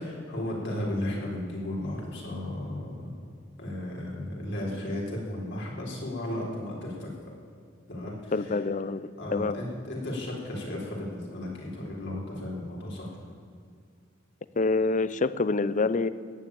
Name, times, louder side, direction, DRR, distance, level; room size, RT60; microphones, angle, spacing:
voice 1, 0.0-3.1 3.6-7.1 7.9-8.6 9.2-13.1, left 1 dB, 60° left, -2 dB, 4.1 m, -34 dB
voice 2, 8.3-9.6 14.6-16.1, left 3 dB, 40° left, 16 dB, 0.5 m, -26 dB
14.5 x 9.5 x 8.8 m, 2.2 s
head